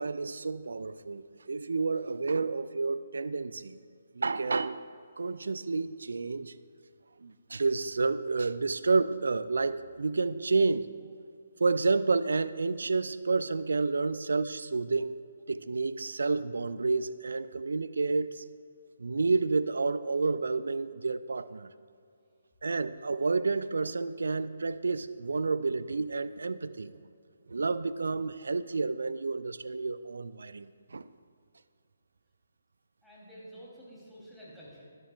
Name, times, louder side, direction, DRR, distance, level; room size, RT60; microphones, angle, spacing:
voice 1, 0.0-3.8 4.1-4.8 5.2-6.5 7.2-10.9 11.6-15.2 15.5-18.4 19.0-21.7 22.6-26.9 27.5-31.1, right 4 dB, 60° right, 15 dB, 0.5 m, -30 dB
voice 2, 33.0-34.8, equal, ahead, -8 dB, 3.4 m, -49 dB
21.0 x 11.5 x 2.5 m, 2.4 s
figure-of-eight pair, 140°, 0 cm